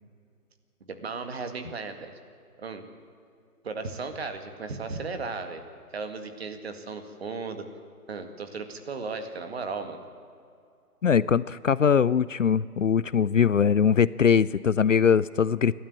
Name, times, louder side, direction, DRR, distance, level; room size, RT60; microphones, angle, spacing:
voice 1, 0.9-2.1 2.6-2.8 3.6-5.6 5.9-7.7 8.1-10.0, right 4 dB, 40° right, 7 dB, 2.0 m, -35 dB
voice 2, 11.0-15.7, left 7 dB, 55° left, 19 dB, 0.5 m, -21 dB
29.0 x 12.5 x 8.8 m, 2.4 s
figure-of-eight pair, 155°, 46 cm